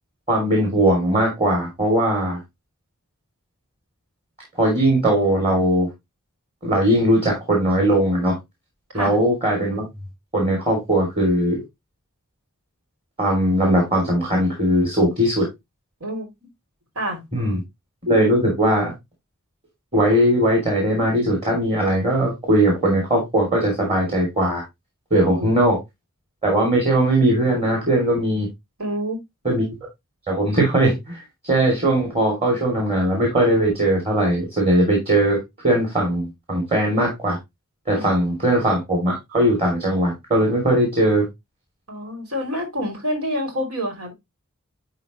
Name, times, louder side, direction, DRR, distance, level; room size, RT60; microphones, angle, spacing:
voice 1, 0.3-2.4 4.6-5.9 6.6-8.3 8.9-9.8 10.3-11.6 13.2-15.5 17.3-17.6 18.1-18.9 19.9-24.6 25.1-25.8 26.4-28.5 29.4-29.7 30.3-35.4 35.6-37.4 37.9-41.2, right 1 dB, 25° right, 2.8 m, -19 dB
voice 2, 28.8-29.2 37.9-38.0 41.9-44.1, equal, 85° right, 3.2 m, -27 dB
11.0 x 3.9 x 3.1 m
head